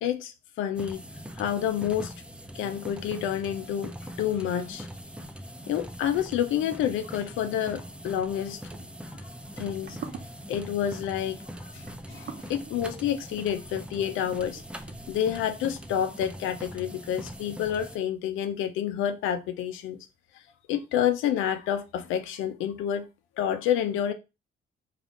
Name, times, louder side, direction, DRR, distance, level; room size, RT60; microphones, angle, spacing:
voice 1, 0.0-1.0 1.4-2.1 2.5-3.9 4.2-4.9 5.7-8.6 9.1-9.2 9.6-10.0 10.5-14.6 15.1-20.1 20.7-23.1 23.4-24.1, left 10 dB, 90° left, 0.5 m, -29 dB
sound 1, 0.7-18.0, equal, 5° right, 0.4 m, -42 dB
sound 2, 8.4-15.4, right 7 dB, 55° right, 0.7 m, -46 dB
3.5 x 2.4 x 3.7 m
cardioid pair, 90°, 20 cm